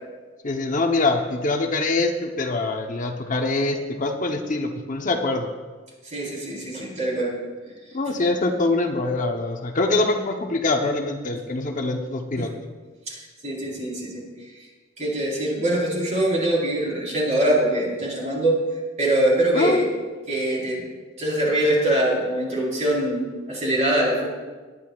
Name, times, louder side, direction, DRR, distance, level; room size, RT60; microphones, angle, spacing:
voice 1, 0.4-5.5 7.9-12.5 19.5-19.9, left 2 dB, 45° left, 3 dB, 0.8 m, -24 dB
voice 2, 6.0-7.4 12.4-12.5 13.1-14.2 15.0-18.6 19.0-19.8 20.3-20.8 21.2-24.3, right 1 dB, 40° right, -4 dB, 4.1 m, -23 dB
19.0 x 11.0 x 2.4 m, 1.4 s
head